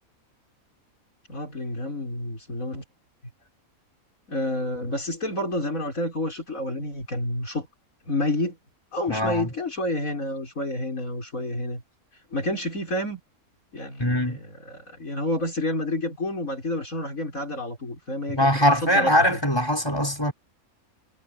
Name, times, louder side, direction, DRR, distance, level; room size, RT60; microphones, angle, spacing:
voice 1, 1.3-2.8 4.3-7.7 8.1-8.6 8.9-11.8 12.3-13.2 13.7-19.4, left 1 dB, 65° left, 6.1 m, -29 dB
voice 2, 9.1-9.5 14.0-14.4 18.3-20.3, equal, 15° left, 5.8 m, -22 dB
omnidirectional pair, 1.5 m